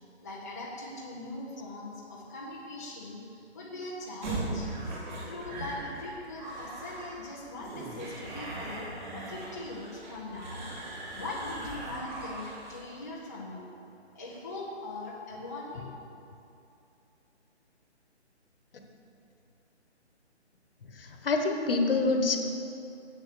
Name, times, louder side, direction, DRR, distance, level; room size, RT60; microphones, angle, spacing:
voice 1, 0.2-4.7 4.9-13.7 14.1-15.9, left 2 dB, 15° left, -6 dB, 0.5 m, -41 dB
sound 1, 4.2-12.9, right 2 dB, 40° right, 2.6 m, -39 dB
voice 2, 21.0-22.4, left 3 dB, 55° left, 4 dB, 1.2 m, -26 dB
8.1 x 6.9 x 6.6 m, 2.7 s
hypercardioid pair, 160°, 34 cm